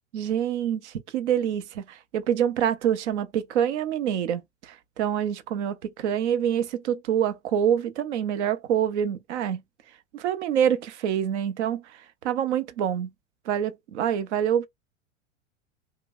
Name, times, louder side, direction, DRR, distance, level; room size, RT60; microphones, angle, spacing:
voice 1, 0.1-9.6 10.1-13.1 13.5-14.7, right 9 dB, 60° right, 0.7 m, -26 dB
2.9 x 2.2 x 3.5 m
figure-of-eight pair, 95°, 38 cm